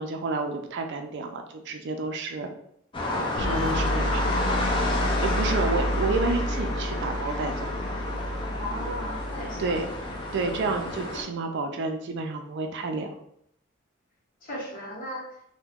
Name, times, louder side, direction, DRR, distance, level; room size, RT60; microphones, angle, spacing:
voice 1, 0.0-2.5 3.4-4.4 5.2-7.7 9.6-9.9 10.3-13.1, right 3 dB, 60° right, 5 dB, 0.4 m, -30 dB
sound 1, 2.9-11.2, left 2 dB, 25° left, 0.5 m, -31 dB
sound 2, 3.4-10.9, equal, 90° left, 0.4 m, -30 dB
voice 2, 3.9-4.6 8.6-9.8 14.4-15.3, left 1 dB, 45° left, -3 dB, 1.0 m, -36 dB
2.9 x 2.2 x 3.5 m, 0.72 s
head